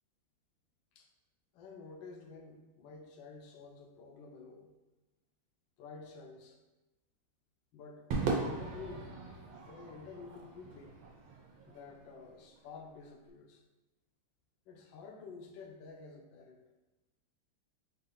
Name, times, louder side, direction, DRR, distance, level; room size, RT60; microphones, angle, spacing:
voice 1, 1.5-4.7 5.8-6.6 7.7-9.1 9.6-11.0 11.6-13.6 14.7-16.6, left 4 dB, 80° left, 3 dB, 1.3 m, -50 dB
Crowd / Fireworks, 8.1-12.6, right 4 dB, 80° right, 1.5 m, -39 dB
4.4 x 2.7 x 3.8 m, 1.1 s
omnidirectional pair, 2.1 m